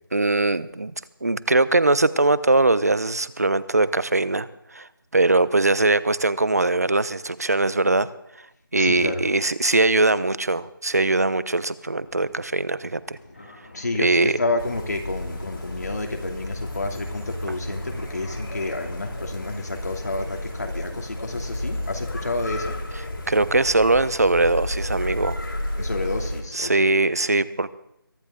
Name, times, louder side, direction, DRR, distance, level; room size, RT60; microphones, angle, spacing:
voice 1, 0.1-0.9 1.2-4.5 4.7-8.1 8.7-13.2 14.0-14.4 23.3-25.4 26.5-27.7, right 2 dB, 45° right, 17 dB, 0.8 m, -21 dB
voice 2, 8.8-9.2 13.7-22.8 25.8-27.2, left 2 dB, 45° left, 2 dB, 2.7 m, -30 dB
Fixed-wing aircraft airplane, 12.0-24.7, left 2 dB, 30° left, 2.5 m, -49 dB
sound 1, 14.6-26.4, left 1 dB, 70° left, 4.2 m, -32 dB
23.0 x 12.5 x 3.7 m, 0.82 s
figure-of-eight pair, 180°, 12 cm